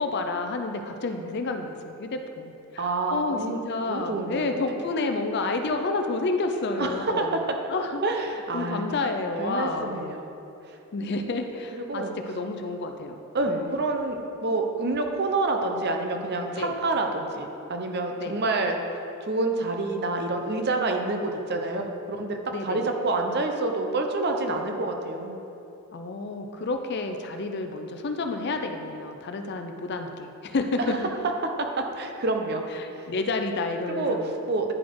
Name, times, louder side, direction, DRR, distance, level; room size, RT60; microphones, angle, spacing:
voice 1, 0.0-7.4 7.7-8.0 8.5-10.0 10.9-13.2 13.5-13.8 16.5-16.7 18.2-18.3 22.5-22.9 25.9-31.1 32.7-34.3, left 3 dB, 50° left, 6 dB, 0.5 m, -30 dB
voice 2, 2.8-3.6 3.9-4.6 6.8-7.4 8.0-8.8 9.4-10.3 11.7-12.1 13.3-18.8 19.2-22.4 22.6-25.4 31.8-32.7 33.9-34.7, right 2 dB, 50° right, 4 dB, 0.7 m, -28 dB
10.0 x 4.2 x 4.6 m, 2.8 s
head